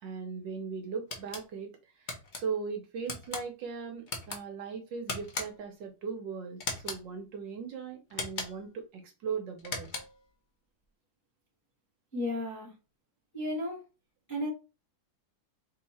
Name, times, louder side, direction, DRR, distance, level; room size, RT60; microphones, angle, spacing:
voice 1, 0.0-9.9, right 5 dB, 65° right, 1.3 m, -38 dB
sound 1, 1.1-1.4 2.1-2.4 3.1-3.4 4.1-4.4 5.1-5.7 6.6-7.0 8.1-8.7 9.6-10.2, left 3 dB, 80° left, 0.4 m, -38 dB
voice 2, 12.1-12.7 13.3-13.8 14.3-14.5, left 1 dB, 15° left, 0.8 m, -33 dB
3.5 x 2.8 x 4.1 m
omnidirectional pair, 2.3 m